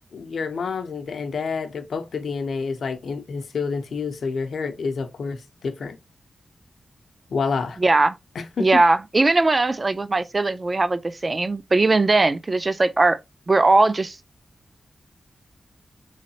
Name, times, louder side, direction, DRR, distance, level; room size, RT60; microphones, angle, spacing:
voice 1, 0.0-6.0 7.3-7.8 8.3-8.8, left 5 dB, 90° left, 0.6 m, -28 dB
voice 2, 7.8-8.2 8.6-13.2 13.5-14.2, right 2 dB, 30° right, 0.4 m, -19 dB
3.9 x 3.1 x 2.7 m
wide cardioid pair, 125°, 0 cm